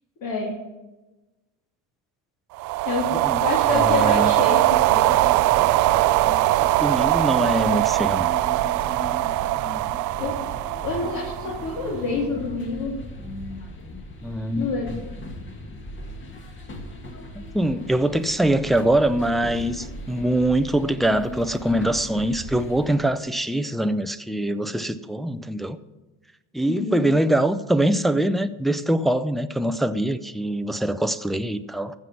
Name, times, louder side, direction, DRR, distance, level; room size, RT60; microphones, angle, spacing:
voice 1, 0.2-0.5 2.8-3.1 3.4-4.6 4.9-5.1 10.2-10.4 10.8-12.9 14.6-14.9 26.6-27.0, left 4 dB, 60° left, 3.2 m, -27 dB
sound 1, 2.6-12.0, right 17 dB, 60° right, 0.5 m, -21 dB
voice 2, 3.1-4.3 6.8-8.3 14.2-15.0 17.3-25.8 26.5-31.9, right 1 dB, ahead, 0.5 m, -23 dB
sound 2, 3.7-23.0, left 1 dB, 35° left, 2.1 m, -38 dB
14.5 x 6.2 x 7.1 m
cardioid pair, 120°, 34 cm